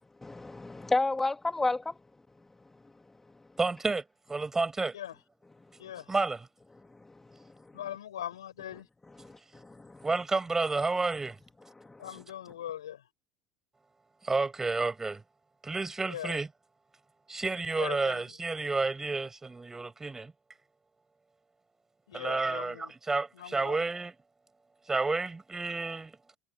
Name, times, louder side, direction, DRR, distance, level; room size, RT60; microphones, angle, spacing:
voice 1, 0.2-1.9 6.9-7.5 9.2-10.1 11.8-12.1, left 2 dB, 15° left, 2.0 m, -32 dB
voice 2, 3.6-4.0 4.3-4.9 6.1-6.5 10.0-11.4 14.2-15.2 15.6-16.5 17.3-20.3 22.1-24.1 24.9-26.4, right 3 dB, 20° right, 5.9 m, -30 dB
voice 3, 5.8-6.1 7.7-8.9 12.0-13.0 16.1-16.4 17.8-18.2 22.1-22.9 23.4-23.8, left 11 dB, 90° left, 7.0 m, -40 dB
hypercardioid pair, 75°, 2 cm